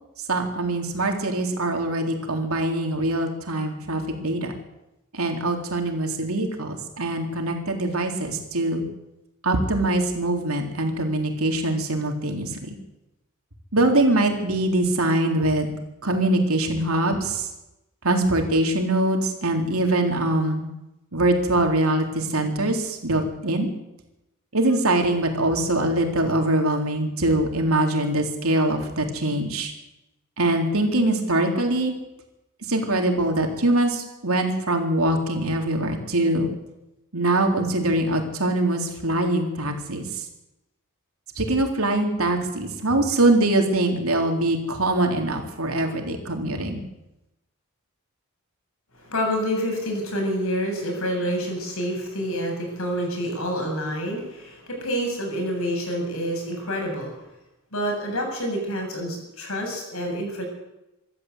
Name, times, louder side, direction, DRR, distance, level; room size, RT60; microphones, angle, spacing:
voice 1, 0.3-4.5 5.1-8.8 9.4-12.7 13.7-15.7 16.0-17.5 18.0-20.6 21.1-23.7 24.5-29.7 30.4-31.9 32.7-36.5 37.1-40.3 41.4-46.8, right 1 dB, 70° right, 3 dB, 3.7 m, -23 dB
voice 2, 49.0-57.1 57.7-60.4, equal, 70° left, 2 dB, 7.8 m, -28 dB
25.5 x 13.0 x 8.1 m, 0.94 s
head